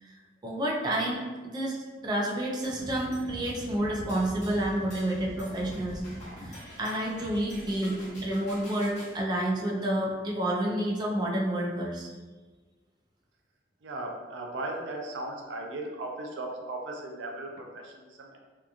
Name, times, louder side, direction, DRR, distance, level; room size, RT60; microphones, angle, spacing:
voice 1, 0.4-1.8 2.0-6.0 6.4-12.1, right 1 dB, 25° right, -3 dB, 0.4 m, -29 dB
sound 1, 2.6-9.1, equal, 40° left, 1.1 m, -43 dB
voice 2, 13.8-18.4, right 2 dB, 85° right, 1 dB, 0.4 m, -37 dB
2.8 x 2.3 x 2.4 m, 1.3 s
head